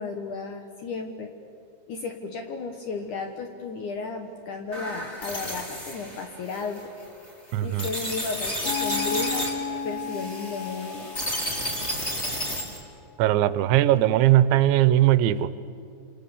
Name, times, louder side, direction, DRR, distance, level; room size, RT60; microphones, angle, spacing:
voice 1, 0.0-1.3 1.9-6.9 7.6-9.5 9.8-11.1, left 4 dB, 65° left, 4 dB, 2.1 m, -34 dB
sound 1, 4.7-12.8, equal, 15° left, 3.5 m, -32 dB
voice 2, 7.5-7.9 13.2-15.5, right 13 dB, 85° right, 14 dB, 3.1 m, -19 dB
sound 2, 8.7-12.9, left 6 dB, 85° left, 3.8 m, -34 dB
28.0 x 28.0 x 7.1 m, 2.5 s
omnidirectional pair, 5.2 m